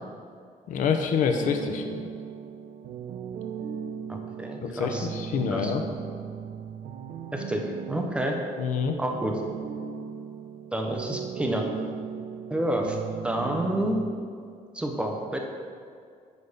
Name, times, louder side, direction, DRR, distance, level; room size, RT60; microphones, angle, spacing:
voice 1, 0.7-1.8 4.6-5.8 8.6-8.9, left 6 dB, 70° left, 6 dB, 0.6 m, -26 dB
sound 1, 1.4-14.1, right 7 dB, 85° right, 0.6 m, -37 dB
voice 2, 4.1-5.1 5.5-5.7 7.3-7.6 7.9-8.4 9.0-9.3 10.7-11.6 12.5-13.0 13.2-14.0 14.7-15.4, right 1 dB, 5° right, 1 dB, 0.5 m, -29 dB
8.1 x 3.4 x 5.4 m, 2.2 s
cardioid pair, 170°, 14 cm